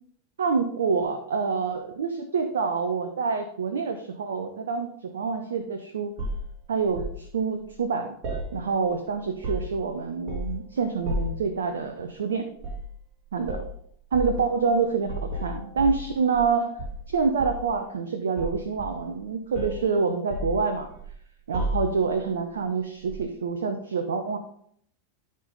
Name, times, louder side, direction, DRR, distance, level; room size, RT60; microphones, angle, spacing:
voice 1, 0.4-6.1 6.7-8.1 8.5-12.5 13.3-13.6 14.1-16.8 17.1-20.9 21.5-24.4, right 5 dB, 65° right, 7 dB, 0.8 m, -27 dB
sound 1, 6.2-7.2 8.2-9.0 9.2-9.8 10.3-10.6 11.0-11.5 12.6-12.9 13.4-13.7 14.1-14.4 15.0-16.5 16.8-17.7 18.4-19.2 19.5-19.8 20.3-21.1 21.5-22.1 23.1-23.2, equal, 35° right, 3.2 m, -32 dB
13.0 x 5.4 x 3.9 m, 0.68 s
figure-of-eight pair, 90°, 0 cm